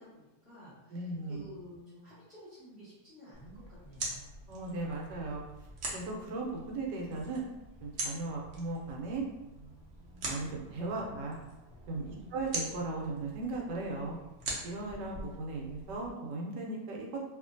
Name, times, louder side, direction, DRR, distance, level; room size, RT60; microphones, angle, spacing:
voice 1, 0.0-4.3 12.0-12.4, equal, 25° left, -12 dB, 0.8 m, -52 dB
voice 2, 0.9-1.4 4.5-5.4 5.9-7.4 7.8-9.2 10.2-11.4 11.9-14.2 14.6-17.2, right 2 dB, 80° right, -1 dB, 1.2 m, -37 dB
sound 1, 3.3-16.1, right 2 dB, 60° right, 0.8 m, -43 dB
2.8 x 2.4 x 2.5 m, 1.0 s
omnidirectional pair, 1.9 m